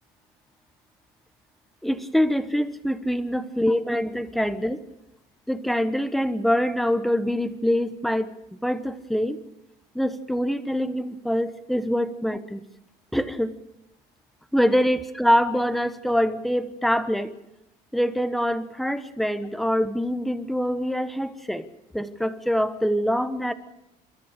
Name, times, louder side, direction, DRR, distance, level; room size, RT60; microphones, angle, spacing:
voice 1, 1.8-4.8 5.5-9.4 9.9-12.6 13.1-13.6 14.5-17.3 17.9-21.7 21.9-23.5, equal, ahead, 11 dB, 1.2 m, -24 dB
30.0 x 14.0 x 6.6 m, 0.89 s
cardioid pair, 150°, 16 cm